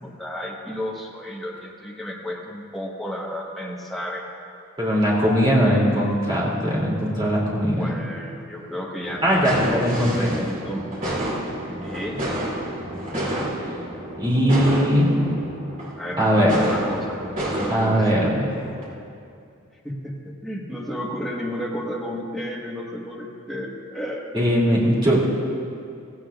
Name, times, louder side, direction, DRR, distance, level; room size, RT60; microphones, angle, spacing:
voice 1, 0.0-4.3 7.7-9.9 10.3-10.8 11.8-12.2 16.0-18.2 19.8-24.6, equal, ahead, -3 dB, 1.3 m, -32 dB
voice 2, 4.8-7.9 9.2-10.3 14.2-15.1 16.2-16.5 17.7-18.5 24.3-25.2, equal, 25° right, -5 dB, 2.8 m, -20 dB
sound 1, 9.0-18.8, right 1 dB, 40° right, 2.8 m, -30 dB
16.5 x 16.5 x 2.4 m, 2.4 s
head